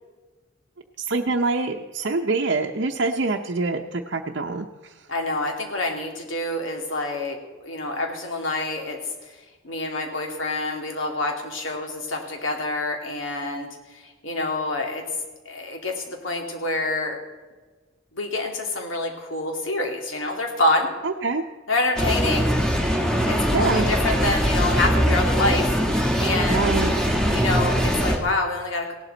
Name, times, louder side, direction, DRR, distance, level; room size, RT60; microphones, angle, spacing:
voice 1, 1.0-4.7 21.0-21.4 23.5-23.9 26.5-26.9, right 3 dB, 60° right, 1 dB, 0.7 m, -25 dB
voice 2, 5.1-7.4 7.6-9.0 9.6-15.0 15.5-17.2 18.1-20.9 21.7-22.5 23.3-26.7 27.3-28.9, left 2 dB, 90° left, 2 dB, 2.6 m, -27 dB
sound 1, 22.0-28.2, equal, 5° left, 1.7 m, -21 dB
17.0 x 11.5 x 4.0 m, 1.3 s
head